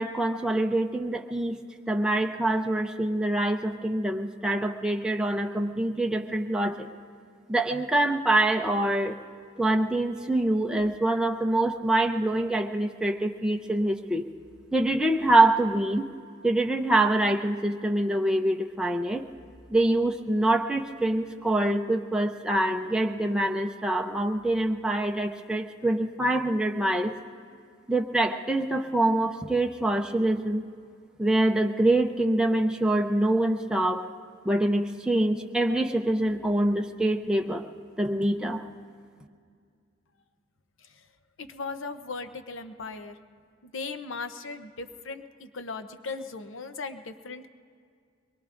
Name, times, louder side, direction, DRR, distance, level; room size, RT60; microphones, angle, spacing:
voice 1, 0.0-1.6 1.9-6.9 7.5-9.1 9.6-14.2 14.7-16.1 16.4-19.2 19.7-27.1 27.9-30.6 31.2-34.1 34.4-37.6 38.0-38.6, right 1 dB, 5° right, 2 dB, 0.6 m, -25 dB
voice 2, 41.4-43.2 43.6-47.6, left 4 dB, 75° left, 9 dB, 0.8 m, -38 dB
23.5 x 22.5 x 2.6 m, 2.2 s
head